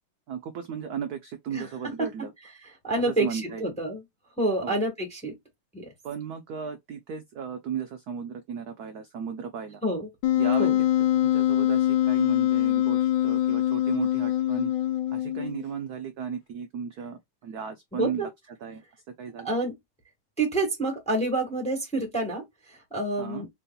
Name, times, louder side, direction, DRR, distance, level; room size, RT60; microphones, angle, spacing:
voice 1, 0.3-2.3 3.0-3.7 4.6-4.8 6.0-9.8 10.4-10.7 11.1-14.7 15.1-18.3 18.6-18.8 19.2-19.5 23.2-23.5, right 7 dB, 80° right, 0.8 m, -35 dB
voice 2, 1.5-2.3 2.6-4.0 4.4-5.4 5.7-5.9 9.8-10.1 10.6-10.8 17.9-18.3 19.4-19.7 20.4-23.5, right 2 dB, 5° left, 0.9 m, -28 dB
Wind instrument woodwind instrument, 10.2-15.6, left 12 dB, 70° left, 1.2 m, -24 dB
4.7 x 2.8 x 2.2 m
omnidirectional pair, 2.4 m